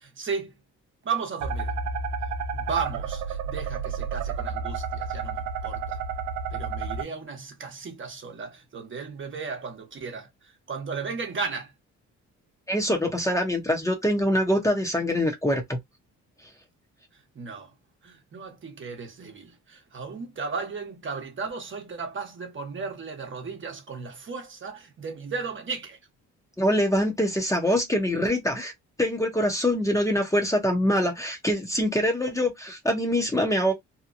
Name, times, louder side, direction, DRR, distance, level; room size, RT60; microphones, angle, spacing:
voice 1, 0.0-0.6 1.0-1.8 2.5-6.0 6.5-10.3 10.7-11.7 17.3-17.7 18.0-26.0, right 5 dB, 40° right, 1.0 m, -35 dB
sound 1, 1.4-7.0, right 5 dB, 70° right, 0.6 m, -31 dB
voice 2, 12.7-15.8 26.6-28.7 29.0-33.7, equal, 10° left, 0.8 m, -24 dB
2.8 x 2.2 x 2.5 m
cardioid pair, 90°, 30 cm